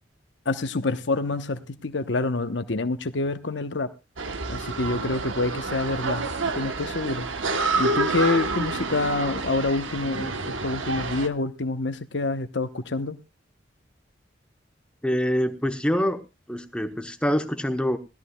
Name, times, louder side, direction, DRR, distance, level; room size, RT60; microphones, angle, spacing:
voice 1, 0.5-3.9 4.5-7.3 7.8-13.2, left 3 dB, 70° left, 1.0 m, -27 dB
sound 1, 4.2-11.3, right 3 dB, 85° right, 1.1 m, -28 dB
voice 2, 15.0-16.2 16.5-18.0, equal, 5° left, 1.0 m, -25 dB
19.5 x 13.5 x 2.3 m
head